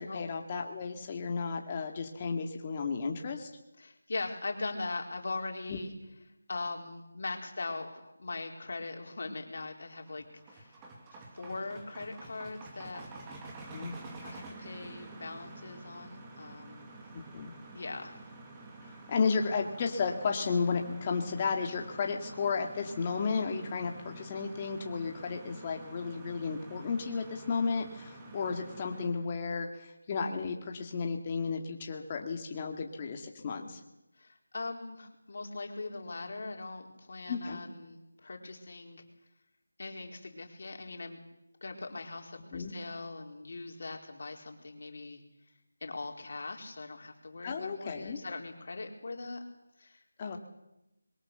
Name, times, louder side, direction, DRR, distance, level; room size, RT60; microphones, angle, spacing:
voice 1, 0.0-3.5 5.7-5.8 13.7-13.9 17.3-17.5 19.1-33.8 37.3-37.6 42.5-42.7 47.4-48.2 50.2-50.4, left 5 dB, 25° left, 3 dB, 2.2 m, -33 dB
voice 2, 3.8-5.9 6.5-10.8 11.3-13.1 14.2-16.9 17.7-18.1 34.2-39.0 39.8-41.2 41.6-45.2 45.8-49.4 49.8-50.0, left 3 dB, 55° left, 2 dB, 4.3 m, -40 dB
sound 1, 9.8-29.2, right 3 dB, 15° right, 2.3 m, -49 dB
22.5 x 21.5 x 6.9 m, 0.91 s
figure-of-eight pair, 170°, 0 cm